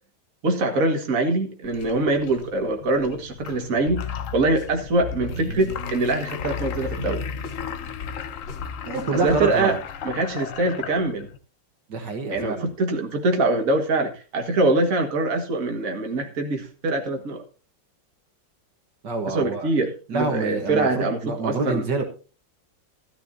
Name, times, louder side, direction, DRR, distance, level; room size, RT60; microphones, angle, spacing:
voice 1, 0.4-4.0 4.3-7.3 9.1-9.8 10.0-11.3 12.3-17.4 19.3-21.8, right 2 dB, 50° right, 3 dB, 2.1 m, -23 dB
sound 1, 1.6-11.4, left 8 dB, 55° left, 1.0 m, -37 dB
sound 2, 3.9-9.5, left 4 dB, 90° left, 3.1 m, -34 dB
voice 2, 8.9-9.8 11.9-12.7 19.0-19.7 20.1-22.0, right 3 dB, 70° right, 5 dB, 2.2 m, -26 dB
14.0 x 13.0 x 2.7 m, 0.34 s
omnidirectional pair, 2.0 m